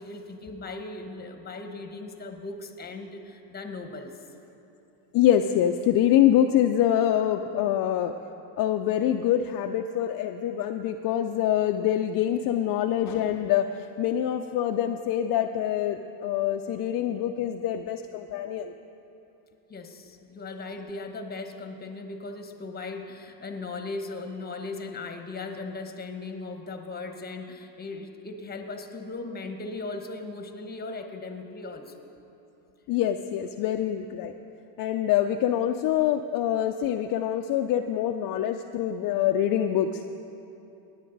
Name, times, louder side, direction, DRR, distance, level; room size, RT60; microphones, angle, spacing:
voice 1, 0.0-4.1 19.7-32.0, left 3 dB, 20° left, 6 dB, 1.1 m, -38 dB
voice 2, 5.1-8.1 8.6-13.7 14.0-18.7 32.9-34.3 34.8-40.1, left 11 dB, 50° left, 5 dB, 0.5 m, -25 dB
17.5 x 9.6 x 4.0 m, 2.9 s
cardioid pair, 110°, 43 cm